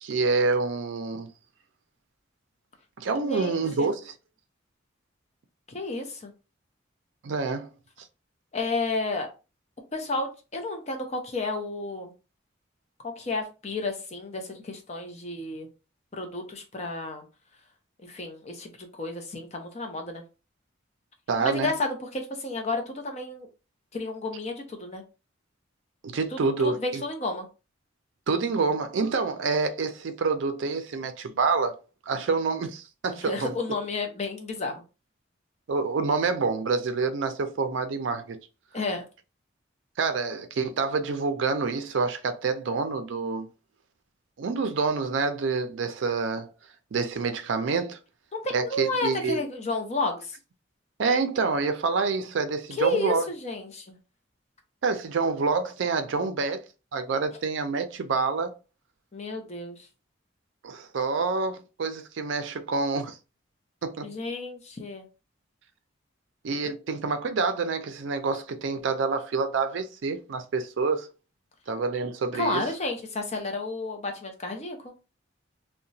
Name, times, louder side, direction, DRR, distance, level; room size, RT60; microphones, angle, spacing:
voice 1, 0.0-1.3 3.0-4.1 7.2-7.7 21.3-21.7 26.0-27.0 28.3-31.7 32.1-33.5 35.7-38.4 40.0-43.5 44.4-46.5 46.9-48.0 48.5-49.4 51.0-53.2 54.8-56.6 56.9-58.5 60.6-63.2 63.8-64.1 66.4-71.1 71.7-72.6, right 4 dB, 70° right, 0.4 m, -27 dB
voice 2, 3.2-3.9 5.7-6.3 8.5-9.3 9.9-12.1 13.0-15.7 16.1-17.2 18.0-20.2 21.4-23.5 23.9-25.0 26.3-27.5 33.2-34.8 38.7-39.0 48.3-50.4 52.7-54.0 59.1-59.9 64.0-65.1 72.3-74.9, left 2 dB, 35° left, 0.6 m, -31 dB
2.8 x 2.1 x 2.6 m
head